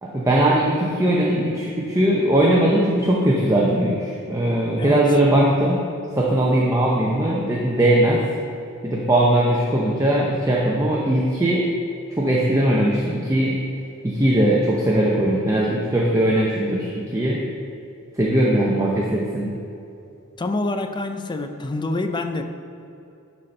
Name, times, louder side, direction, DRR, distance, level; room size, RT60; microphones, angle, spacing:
voice 1, 0.0-5.8 6.2-8.2 8.8-11.7 12.2-13.6 14.0-17.4 18.2-19.5, right 1 dB, 15° right, -4 dB, 0.7 m, -19 dB
voice 2, 20.4-22.4, left 2 dB, 20° left, 6 dB, 0.4 m, -26 dB
11.5 x 4.2 x 4.3 m, 2.8 s
head